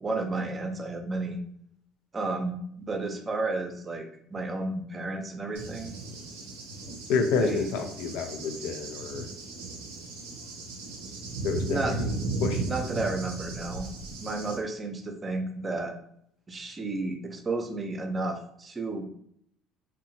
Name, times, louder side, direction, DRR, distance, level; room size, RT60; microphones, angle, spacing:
voice 1, 0.0-1.4 2.1-5.9 7.3-7.7 11.7-12.0 12.7-13.9 14.2-15.9 16.5-19.0, right 2 dB, 30° right, 5 dB, 0.6 m, -32 dB
Cricket / Thunder, 5.5-14.6, right 3 dB, 90° right, 0.5 m, -36 dB
voice 2, 7.1-9.3 11.4-12.1 12.4-12.6, left 5 dB, 75° left, 6 dB, 0.4 m, -29 dB
2.8 x 2.2 x 2.7 m, 0.68 s
hypercardioid pair, 70°, 0 cm